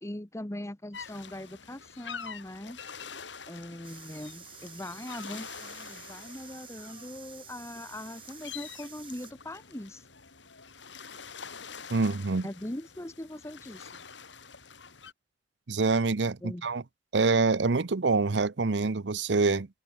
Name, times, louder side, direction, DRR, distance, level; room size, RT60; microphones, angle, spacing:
voice 1, 0.0-2.8 3.5-10.0 12.4-14.0 16.4-16.7, left 1 dB, 15° left, 1.1 m, -41 dB
sound 1, 0.9-15.1, left 6 dB, 80° left, 5.5 m, -46 dB
sound 2, 3.8-9.3, right 8 dB, 30° right, 3.1 m, -50 dB
voice 2, 11.9-12.5 15.7-16.8 17.1-19.7, right 3 dB, 70° right, 0.8 m, -26 dB
head